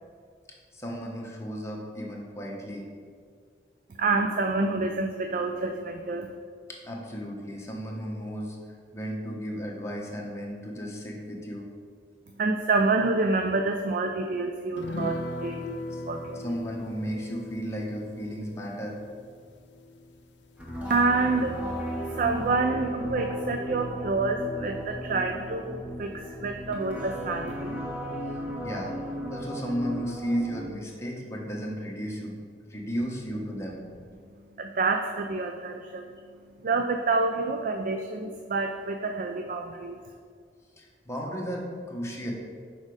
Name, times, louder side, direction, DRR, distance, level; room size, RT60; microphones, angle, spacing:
voice 1, 0.7-2.9 6.8-8.6 8.9-11.7 15.9-16.0 16.3-19.0 21.3-21.5 28.6-29.0 29.3-32.4 32.6-33.8 40.8-42.3, equal, 15° left, -2 dB, 1.0 m, -34 dB
voice 2, 4.0-6.3 12.4-16.4 20.9-21.6 22.1-27.7 34.6-36.1 36.6-40.0, right 3 dB, 50° right, 5 dB, 0.4 m, -28 dB
sound 1, 14.8-21.6 21.9-22.0 22.3-22.5, left 1 dB, 70° left, 0.5 m, -39 dB
sound 2, 20.6-30.6, equal, 10° right, 1.1 m, -35 dB
6.4 x 5.1 x 4.8 m, 2.1 s
head